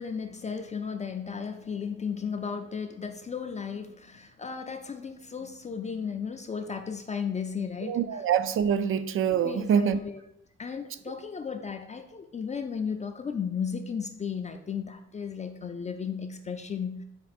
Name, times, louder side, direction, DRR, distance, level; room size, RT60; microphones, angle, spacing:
voice 1, 0.0-8.2 9.4-10.2 10.6-17.0, left 6 dB, 25° left, 6 dB, 0.4 m, -35 dB
voice 2, 7.8-10.0, right 8 dB, 45° right, 12 dB, 0.4 m, -25 dB
5.1 x 2.4 x 4.2 m, 0.76 s
cardioid pair, 90°, 30 cm